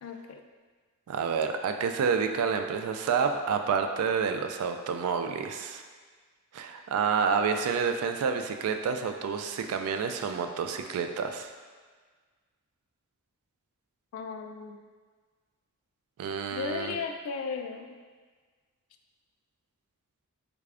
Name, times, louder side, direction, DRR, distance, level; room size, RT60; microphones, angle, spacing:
voice 1, 0.0-0.4 14.1-14.8 16.5-17.9, left 5 dB, 70° left, 6 dB, 0.3 m, -35 dB
voice 2, 1.1-5.8 6.5-11.5 16.2-17.0, right 6 dB, 75° right, 8 dB, 0.3 m, -29 dB
3.5 x 3.3 x 2.4 m, 1.5 s
head